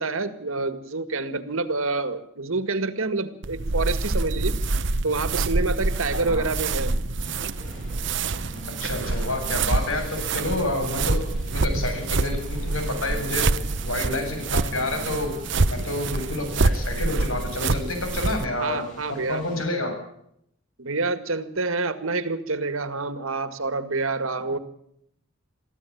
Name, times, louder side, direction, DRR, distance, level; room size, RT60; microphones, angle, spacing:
voice 1, 0.0-4.6 5.0-7.0 18.6-19.4 20.8-24.6, right 3 dB, 75° right, 11 dB, 1.9 m, -27 dB
sound 1, 3.4-18.5, right 3 dB, 55° right, 0.9 m, -26 dB
voice 2, 6.1-6.5 8.8-13.5 13.8-15.4 15.7-18.8 19.1-20.0, left 2 dB, 75° left, 5 dB, 7.7 m, -29 dB
sound 2, 7.2-19.7, equal, 35° left, 7.7 m, -44 dB
23.5 x 15.0 x 8.6 m, 0.73 s
head